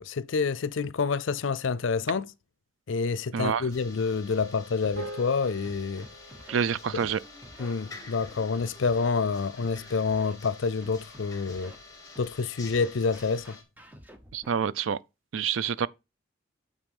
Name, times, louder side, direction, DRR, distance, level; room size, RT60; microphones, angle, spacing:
voice 1, 0.0-2.3 2.9-6.1 7.6-11.7 12.2-13.6, left 5 dB, 80° left, 0.5 m, -28 dB
voice 2, 3.3-3.6 6.5-7.2 14.3-15.0 15.3-15.9, right 7 dB, 85° right, 0.4 m, -27 dB
sound 1, 3.7-13.6, left 3 dB, 20° left, 1.9 m, -48 dB
Scratching (performance technique), 4.3-4.5 4.8-5.1 5.6-6.6 6.9-7.1 7.4-7.7 8.2-9.1 9.6-9.7 10.1-10.3 10.8-11.8 12.1-12.3 12.6-14.5, equal, 10° right, 0.8 m, -49 dB
sound 2, 5.0-9.5, right 1 dB, 45° right, 1.9 m, -46 dB
9.0 x 4.2 x 5.4 m
head